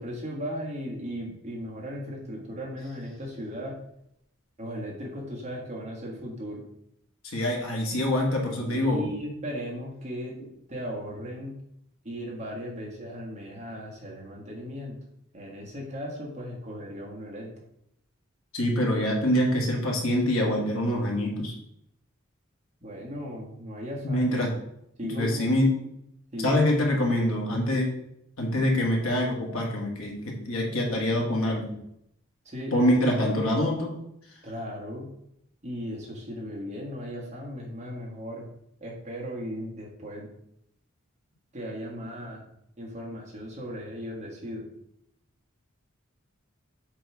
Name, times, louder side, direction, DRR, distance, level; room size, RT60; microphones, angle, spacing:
voice 1, 0.0-3.8 4.6-6.6 8.6-10.4 10.7-11.5 12.0-15.0 15.3-17.5 22.8-24.3 25.0-25.5 26.3-26.8 27.7-27.8 32.4-32.7 34.4-35.2 35.6-38.5 38.8-40.3 41.5-42.4 42.8-44.7, equal, 30° right, -3 dB, 1.5 m, -36 dB
voice 2, 7.3-9.1 18.5-21.5 24.0-24.5 25.0-25.7 26.4-27.9 28.4-31.8 32.7-33.9, left 1 dB, 80° left, 0 dB, 1.6 m, -25 dB
7.6 x 3.1 x 4.7 m, 0.76 s
head